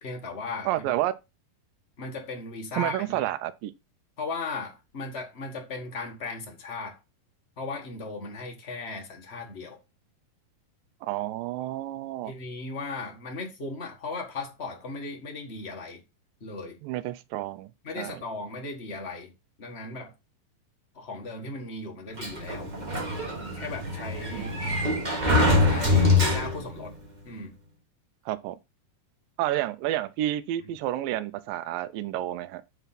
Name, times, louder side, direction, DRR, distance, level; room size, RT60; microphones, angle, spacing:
voice 1, 0.0-0.9 2.0-3.2 4.2-7.0 7.6-9.8 12.2-16.0 16.4-16.8 17.8-19.3 19.6-20.1 20.9-22.7 23.5-24.5 25.6-26.9 27.2-27.6, left 3 dB, 70° left, 0.6 m, -37 dB
voice 2, 0.7-1.1 2.8-3.7 11.0-12.3 16.8-17.7 18.0-18.2 24.3-24.7 28.3-28.6 29.4-32.6, right 14 dB, 80° right, 2.3 m, -30 dB
Sliding door, 22.2-26.8, left 2 dB, 40° right, 0.6 m, -24 dB
9.1 x 3.6 x 5.8 m
omnidirectional pair, 4.1 m